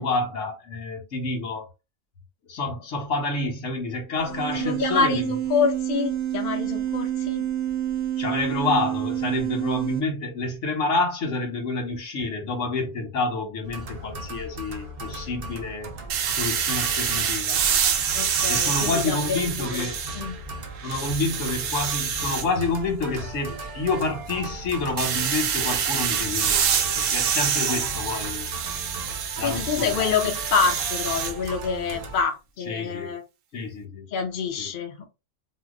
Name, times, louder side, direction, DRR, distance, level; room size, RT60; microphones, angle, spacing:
voice 1, 0.0-1.6 2.5-5.2 8.2-15.9 16.4-17.6 18.5-20.0 20.8-28.5 29.4-30.1 32.7-33.1 33.5-34.1 34.6-34.7, left 3 dB, 75° left, 1.4 m, -28 dB
sound 1, 4.2-10.0, right 11 dB, 65° right, 0.8 m, -28 dB
voice 2, 4.5-7.5 18.1-19.9 20.1-20.4 29.4-33.2 34.1-35.1, left 5 dB, 55° left, 0.7 m, -27 dB
sound 2, 13.6-32.2, right 2 dB, 45° right, 0.5 m, -37 dB
sound 3, 16.1-20.4 20.8-22.5 25.0-31.3, right 8 dB, 90° right, 1.0 m, -26 dB
2.8 x 2.2 x 3.7 m
omnidirectional pair, 1.3 m